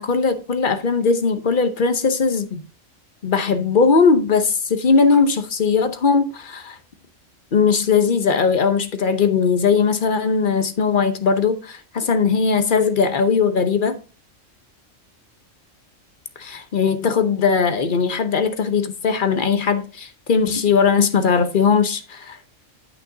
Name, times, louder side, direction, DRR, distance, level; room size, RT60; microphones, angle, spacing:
voice 1, 0.0-2.6 3.2-6.8 7.5-14.0 16.4-22.4, left 5 dB, 45° left, 0.9 m, -19 dB
8.6 x 8.6 x 2.7 m
omnidirectional pair, 1.3 m